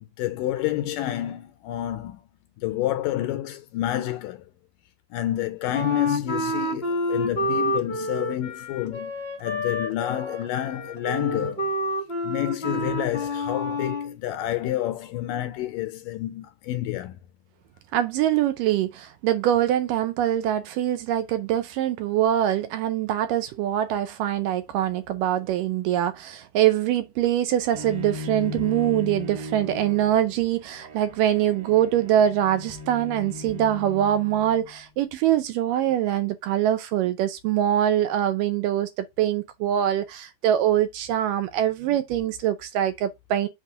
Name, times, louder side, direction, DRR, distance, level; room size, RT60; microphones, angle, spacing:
voice 1, 0.2-2.2 2.6-4.4 5.1-9.1 9.4-11.7 12.2-17.2, left 13 dB, 80° left, 2.1 m, -29 dB
Wind instrument woodwind instrument, 5.7-14.2, left 1 dB, 40° left, 0.8 m, -29 dB
voice 2, 17.9-43.5, right 11 dB, 80° right, 2.1 m, -24 dB
Bowed string instrument, 27.7-34.8, left 2 dB, 65° right, 3.9 m, -37 dB
7.5 x 3.1 x 5.4 m
omnidirectional pair, 4.2 m